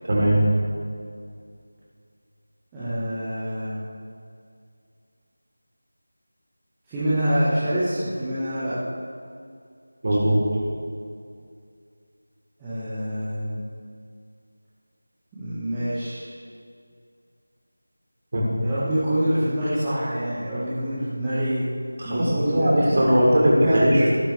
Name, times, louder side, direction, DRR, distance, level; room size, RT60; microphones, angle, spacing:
voice 1, 0.0-0.4 10.0-10.4 18.3-18.5 22.0-24.0, equal, 35° right, -5 dB, 4.0 m, -19 dB
voice 2, 2.7-3.8 6.9-8.8 12.6-13.6 15.3-16.3 18.6-21.6 22.0-23.1 23.6-24.1, equal, 10° right, -14 dB, 1.8 m, -26 dB
18.5 x 11.0 x 3.6 m, 2.3 s
figure-of-eight pair, 170°, 0 cm